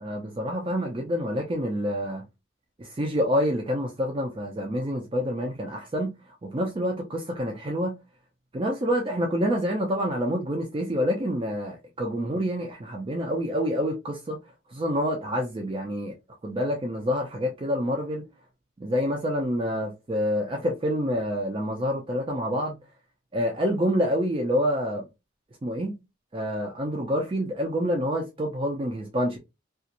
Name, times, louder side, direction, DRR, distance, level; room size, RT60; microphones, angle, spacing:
voice 1, 0.0-2.2 2.8-6.1 6.4-7.9 8.5-14.4 14.7-16.1 16.4-18.2 18.8-22.8 23.3-25.0 25.6-26.0 26.3-29.4, equal, 25° right, 0.4 m, -27 dB
2.5 x 2.4 x 2.8 m
head